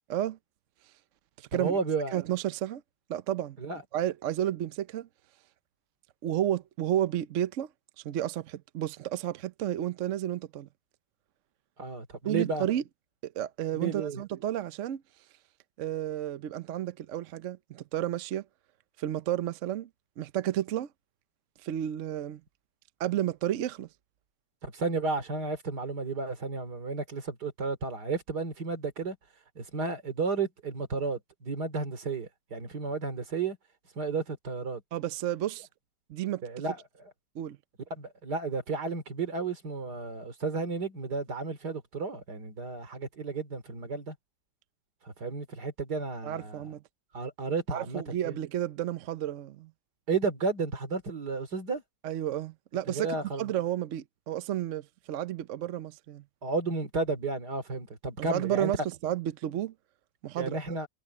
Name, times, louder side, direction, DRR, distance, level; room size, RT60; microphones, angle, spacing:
voice 1, 1.5-2.2 3.6-3.8 11.8-12.7 13.7-14.2 24.6-29.2 29.5-33.6 33.9-34.8 36.4-36.8 37.9-44.1 45.0-46.7 47.1-48.4 50.1-51.8 52.9-53.5 56.4-58.7 60.4-60.9, right 4 dB, 85° right, 3.4 m, -32 dB
voice 2, 2.1-2.8 3.1-3.6 3.9-5.1 6.2-7.7 8.0-10.7 12.2-12.8 13.2-15.0 15.8-18.4 19.0-19.9 20.2-20.9 21.6-22.4 23.0-23.9 34.9-35.7 36.1-36.4 37.4-37.6 46.2-46.8 47.7-49.7 52.0-53.1 53.4-56.2 58.3-59.7 60.2-60.8, right 11 dB, 60° right, 0.9 m, -31 dB
omnidirectional pair, 1.7 m